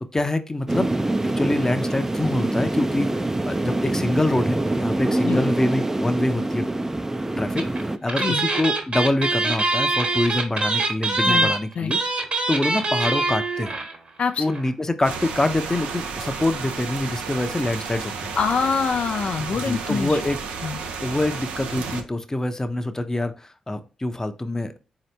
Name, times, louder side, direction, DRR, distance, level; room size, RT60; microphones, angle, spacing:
voice 1, 0.1-0.9 1.3-6.7 7.4-7.6 8.0-12.0 12.5-13.7 14.4-18.3 19.4-20.4 21.0-24.8, left 2 dB, 20° left, 8 dB, 0.6 m, -25 dB
sound 1, 0.7-8.0, right 2 dB, 20° right, 0.4 m, -25 dB
sound 2, 7.6-7.8 8.1-14.0 14.2-14.3 14.5-14.7, right 2 dB, 50° right, 1.3 m, -23 dB
voice 2, 11.2-12.0 14.2-14.5 18.4-20.1 20.6-20.8, left 5 dB, 60° left, 7 dB, 0.3 m, -25 dB
sound 3, 15.0-22.0, right 5 dB, 85° right, 0.5 m, -32 dB
4.0 x 2.8 x 3.2 m, 0.34 s
supercardioid pair, 45°, 2 cm